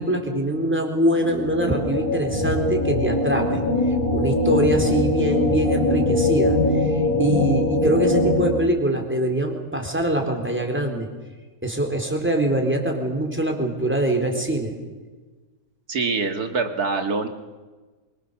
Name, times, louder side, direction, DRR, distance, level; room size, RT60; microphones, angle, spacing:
voice 1, 0.0-3.6 4.1-11.1 11.6-14.7, right 1 dB, 5° right, 2 dB, 4.0 m, -23 dB
sound 1, 1.1-8.5, left 2 dB, 80° left, 4.9 m, -22 dB
voice 2, 15.9-17.3, right 4 dB, 80° right, 6 dB, 2.5 m, -24 dB
27.0 x 24.5 x 7.1 m, 1.3 s
omnidirectional pair, 1.6 m